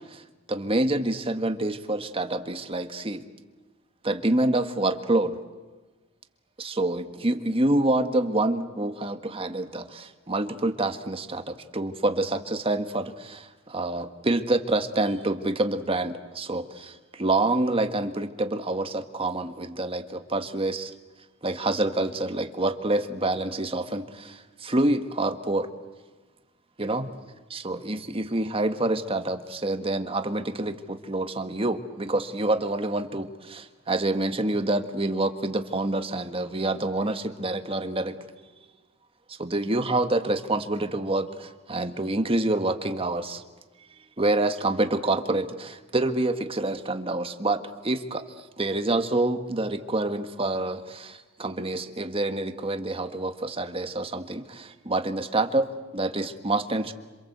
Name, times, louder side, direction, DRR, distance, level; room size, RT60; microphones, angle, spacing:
voice 1, 0.5-3.2 4.0-5.4 6.6-20.9 21.4-25.7 26.8-27.1 27.5-38.1 39.4-43.4 44.2-48.2 48.6-56.9, right 2 dB, 25° right, 8 dB, 1.6 m, -27 dB
27.5 x 26.5 x 8.0 m, 1.2 s
head